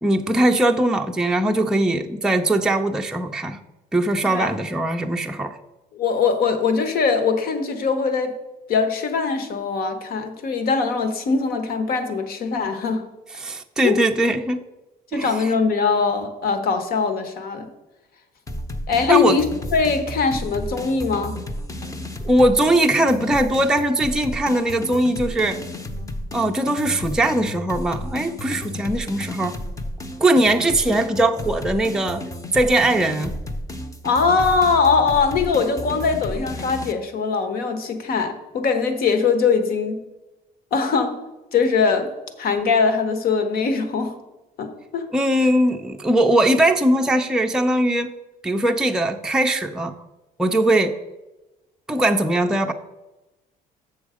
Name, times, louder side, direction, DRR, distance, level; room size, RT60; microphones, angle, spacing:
voice 1, 0.0-3.6 3.9-5.6 13.4-14.6 15.1-15.5 19.1-19.4 22.2-25.6 26.3-29.6 30.2-32.2 32.5-33.3 45.1-48.1 48.4-49.9 50.4-50.9 51.9-52.7, right 1 dB, 5° right, 3 dB, 0.5 m, -20 dB
voice 2, 5.9-8.4 8.7-13.1 13.8-14.0 15.1-17.7 18.9-19.4 19.7-21.4 34.0-40.0 40.7-41.2 41.5-42.1 42.4-44.2 44.6-45.1, left 5 dB, 60° left, 8 dB, 1.2 m, -21 dB
sound 1, 18.5-36.9, left 1 dB, 20° left, 0.8 m, -33 dB
7.3 x 6.3 x 4.9 m, 1.0 s
cardioid pair, 110°, 17 cm